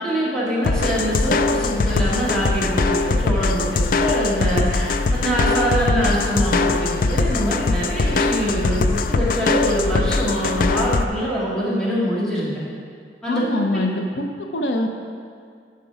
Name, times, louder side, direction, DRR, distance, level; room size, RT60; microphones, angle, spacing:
voice 1, 0.0-12.6 13.2-13.6, equal, 5° left, -8 dB, 2.2 m, -24 dB
sound 1, 0.6-11.0, left 3 dB, 50° left, 0.4 m, -21 dB
voice 2, 13.3-14.9, left 1 dB, 85° left, 4 dB, 0.7 m, -24 dB
10.0 x 5.9 x 4.9 m, 2.2 s
head